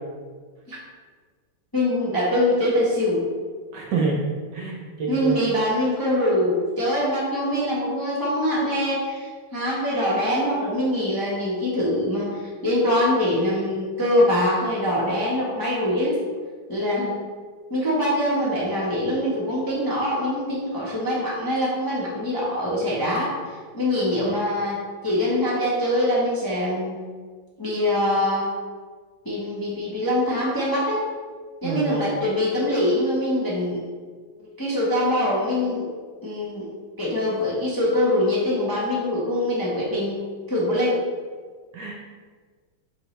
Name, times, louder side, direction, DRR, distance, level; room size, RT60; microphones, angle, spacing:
voice 1, 1.7-3.3 5.1-12.3 12.6-16.2 16.7-17.1 17.7-23.3 23.7-24.8 25.0-27.0 27.6-28.5 29.2-31.0 31.6-33.8 34.4-35.9 36.2-36.7 37.0-40.2 40.5-40.9, left 1 dB, 15° left, -7 dB, 0.8 m, -23 dB
voice 2, 3.7-4.2 4.5-5.4 31.6-32.1 41.7-41.9, right 4 dB, 65° right, 0 dB, 1.2 m, -27 dB
7.8 x 3.7 x 3.2 m, 1.6 s
omnidirectional pair, 2.3 m